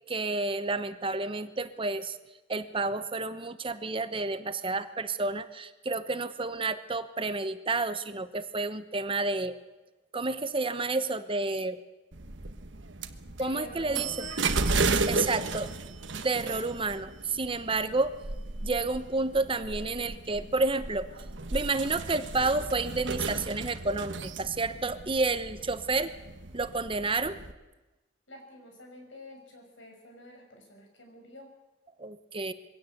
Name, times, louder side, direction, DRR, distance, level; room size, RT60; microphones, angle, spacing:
voice 1, 0.1-2.2 2.5-9.6 10.1-11.8 13.4-14.1 15.1-15.7 16.2-18.1 18.6-21.1 21.5-26.1 26.5-27.4 32.0-32.5, right 3 dB, 30° right, 11 dB, 1.0 m, -30 dB
sound 1, 12.1-27.5, right 3 dB, 70° right, 1.4 m, -34 dB
voice 2, 13.3-14.5 15.0-15.9 28.3-31.5, left 1 dB, 80° left, 2 dB, 6.8 m, -47 dB
23.0 x 17.0 x 8.0 m, 1.1 s
head